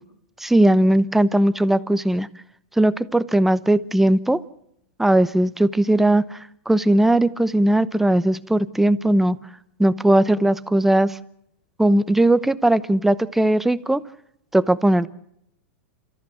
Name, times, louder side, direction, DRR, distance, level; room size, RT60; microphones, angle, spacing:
voice 1, 0.4-2.3 2.8-4.4 5.0-6.4 6.7-9.4 9.8-11.2 11.8-14.0 14.5-15.1, right 1 dB, 5° right, 15 dB, 0.8 m, -18 dB
30.0 x 14.5 x 7.2 m, 0.75 s
hypercardioid pair, 120°, 6 cm